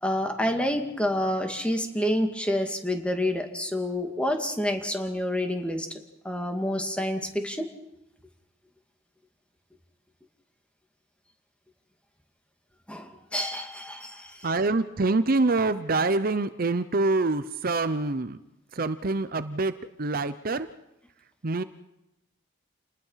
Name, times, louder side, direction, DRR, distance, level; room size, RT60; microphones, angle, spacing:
voice 1, 0.0-5.9 6.2-7.7 12.9-14.5, left 1 dB, 5° left, 4 dB, 2.3 m, -28 dB
voice 2, 14.4-18.4 18.7-19.7 20.0-20.7 21.4-21.6, right 3 dB, 50° right, 12 dB, 0.8 m, -25 dB
28.5 x 20.0 x 5.8 m, 0.90 s
head